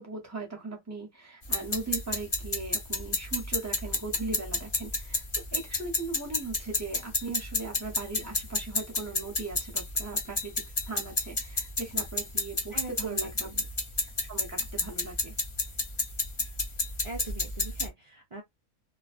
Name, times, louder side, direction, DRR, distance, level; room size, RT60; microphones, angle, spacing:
voice 1, 0.0-13.5 14.2-15.4, right 3 dB, 15° right, 0.6 m, -39 dB
sound 1, 1.4-17.9, left 3 dB, 45° left, 0.3 m, -31 dB
voice 2, 12.7-13.6 17.0-18.4, right 3 dB, 55° right, 0.3 m, -41 dB
2.4 x 2.1 x 2.4 m
omnidirectional pair, 1.5 m